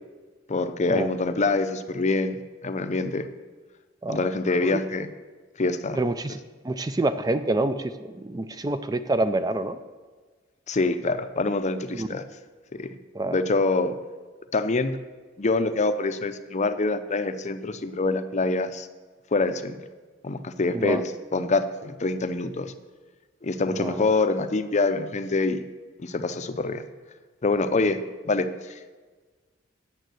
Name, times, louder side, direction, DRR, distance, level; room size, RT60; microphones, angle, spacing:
voice 1, 0.5-2.4 2.6-3.3 4.1-5.1 5.6-6.0 10.7-12.2 12.7-12.9 13.2-13.9 14.5-15.0 15.4-18.9 19.3-19.8 20.2-21.0 21.3-22.7 23.4-25.6 26.0-26.8 27.4-28.0 28.2-28.9, left 3 dB, 35° left, 10 dB, 0.6 m, -25 dB
voice 2, 5.9-6.4 6.6-9.8 11.9-12.1 13.1-13.4 20.7-21.0 23.7-24.1, right 2 dB, 20° right, 10 dB, 0.4 m, -27 dB
9.2 x 7.2 x 7.8 m, 1.4 s
head